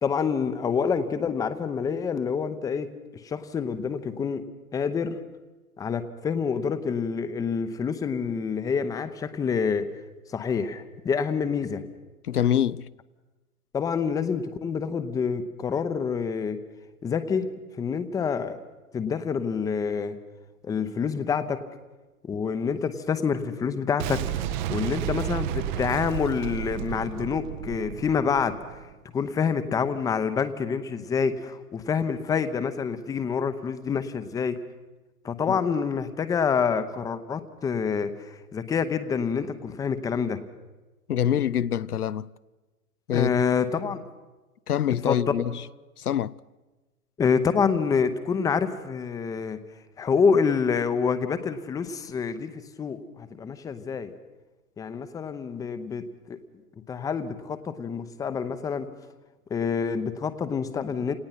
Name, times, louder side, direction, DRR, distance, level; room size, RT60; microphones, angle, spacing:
voice 1, 0.0-2.9 3.2-4.4 4.7-5.2 5.8-9.9 10.3-11.8 13.7-16.6 17.0-17.5 17.8-18.6 18.9-20.2 20.6-21.6 22.2-28.5 29.1-34.6 35.2-40.4 43.1-44.0 45.1-45.3 47.2-49.6 50.0-54.1 54.8-56.4 56.9-58.9 59.5-61.1, left 6 dB, 10° left, 0.8 m, -27 dB
voice 2, 12.3-12.9 35.5-35.6 41.1-42.3 43.1-43.3 44.7-45.6 46.0-46.3, left 10 dB, 75° left, 0.6 m, -25 dB
Boom, 24.0-28.9, right 12 dB, 30° right, 0.8 m, -32 dB
28.0 x 18.5 x 5.8 m
figure-of-eight pair, 115°, 45 cm